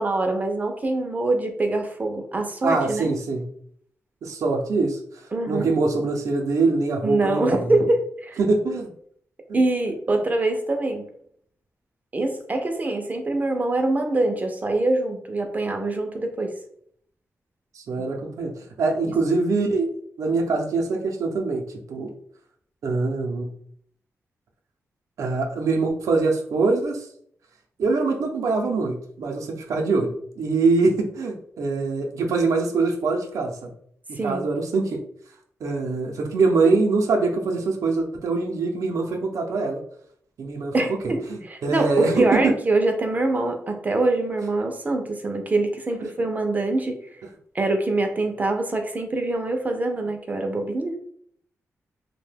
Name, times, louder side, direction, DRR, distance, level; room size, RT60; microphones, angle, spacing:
voice 1, 0.0-3.1 5.3-5.7 7.0-8.4 9.5-11.0 12.1-16.5 34.1-34.4 40.7-47.0 47.5-50.9, right 2 dB, 30° right, 4 dB, 0.4 m, -24 dB
voice 2, 2.6-3.5 4.2-5.0 5.5-7.8 8.4-8.9 9.5-9.6 10.1-10.2 17.7-18.5 18.8-21.6 21.9-22.1 22.8-23.5 25.2-27.1 27.8-33.7 34.1-35.0 35.6-39.8 40.4-42.5 46.0-46.1, right 3 dB, 85° right, 2 dB, 0.5 m, -23 dB
2.6 x 2.1 x 3.3 m, 0.63 s
wide cardioid pair, 110°, 5 cm